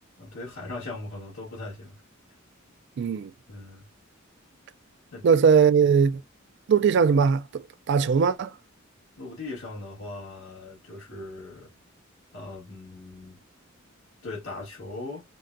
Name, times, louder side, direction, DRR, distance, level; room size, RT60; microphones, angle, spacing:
voice 1, 0.2-2.0 3.5-3.9 5.1-5.3 9.2-11.7 12.3-13.4 14.2-15.2, left 2 dB, 85° left, 1.7 m, -39 dB
voice 2, 3.0-3.3 5.2-6.1 6.7-7.6 7.9-8.5, right 6 dB, 60° right, 0.3 m, -20 dB
3.9 x 2.2 x 2.5 m
head